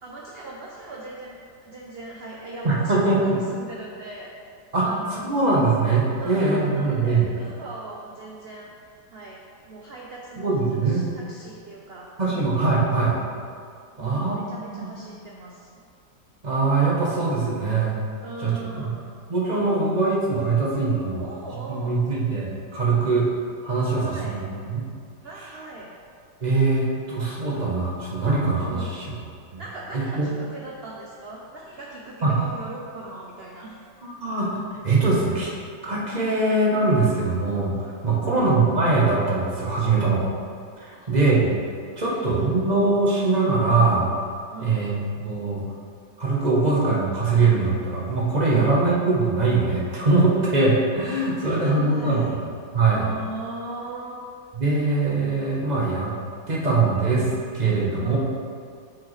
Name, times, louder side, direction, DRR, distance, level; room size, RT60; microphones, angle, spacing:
voice 1, 0.0-5.4 6.2-8.8 9.1-9.4 9.7-12.6 13.9-15.7 18.2-19.1 21.2-22.1 23.9-24.5 25.2-25.9 28.6-29.0 29.6-33.9 38.2-38.5 40.9-41.2 42.0-42.7 44.5-45.1 48.5-48.9 51.3-52.4 52.9-54.2 58.0-58.2, right 2 dB, 75° right, -2 dB, 0.5 m, -39 dB
voice 2, 2.6-3.4 4.7-7.3 10.4-11.0 12.2-13.1 14.0-14.4 14.7-14.9 16.4-18.0 18.4-18.9 19.3-21.2 21.7-23.3 23.6-24.8 26.4-29.2 29.5-29.6 30.2-30.3 32.2-32.3 34.0-34.6 34.8-35.5 35.8-40.2 40.8-41.5 42.0-44.1 44.6-45.6 46.2-52.2 52.7-53.0 54.6-56.1 56.5-58.2, right 3 dB, 30° right, -5 dB, 0.9 m, -22 dB
7.8 x 4.9 x 3.2 m, 2.2 s
omnidirectional pair, 1.9 m